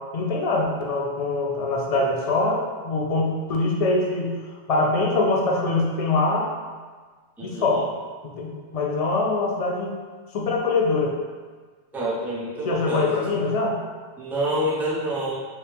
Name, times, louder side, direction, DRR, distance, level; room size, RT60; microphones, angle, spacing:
voice 1, 0.1-4.3 4.7-6.5 7.4-8.0 8.2-10.0 10.3-11.1 12.6-13.8, left 3 dB, 50° left, -1 dB, 0.4 m, -23 dB
voice 2, 7.4-7.8 11.9-13.4 14.2-15.4, right 1 dB, ahead, -7 dB, 0.5 m, -27 dB
3.3 x 2.8 x 3.4 m, 1.5 s
omnidirectional pair, 1.2 m